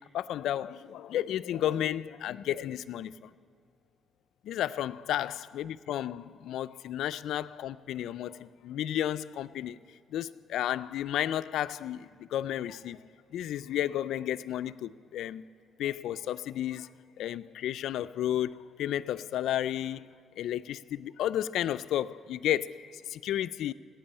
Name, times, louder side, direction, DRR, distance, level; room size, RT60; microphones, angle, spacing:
voice 1, 0.1-3.3 4.4-9.8 10.1-13.0 13.3-15.4 15.8-20.1 20.4-23.7, left 11 dB, 80° left, 0.3 m, -32 dB
13.0 x 8.9 x 8.7 m
cardioid pair, 90°, 0 cm